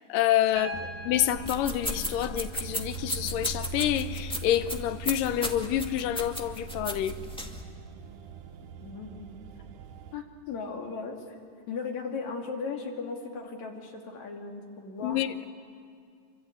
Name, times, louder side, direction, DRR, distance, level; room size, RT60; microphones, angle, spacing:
voice 1, 0.0-7.2 15.0-15.5, left 12 dB, 80° left, 2.5 m, -28 dB
voice 2, 0.6-0.9 8.8-9.3 10.1-11.2 11.7-15.2, left 4 dB, 60° left, 4.0 m, -37 dB
Piano, 0.6-4.6 6.1-6.2, equal, 45° right, 2.4 m, -45 dB
sound 1, 0.7-10.2, right 6 dB, 75° right, 2.3 m, -43 dB
sound 2, 1.4-7.6, left 1 dB, 5° left, 1.1 m, -36 dB
26.5 x 25.0 x 8.6 m
omnidirectional pair, 3.8 m